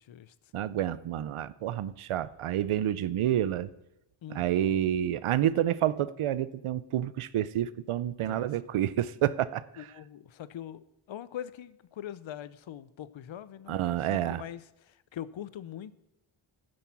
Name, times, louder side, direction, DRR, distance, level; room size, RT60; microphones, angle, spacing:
voice 1, 0.0-0.3 4.2-4.4 4.7-4.8 8.3-8.5 9.8-15.9, left 10 dB, 65° left, 17 dB, 0.6 m, -43 dB
voice 2, 0.5-3.7 4.3-9.9 13.7-14.4, right 11 dB, 85° right, 18 dB, 0.6 m, -29 dB
10.5 x 7.6 x 5.9 m, 0.85 s
wide cardioid pair, 125°, 49 cm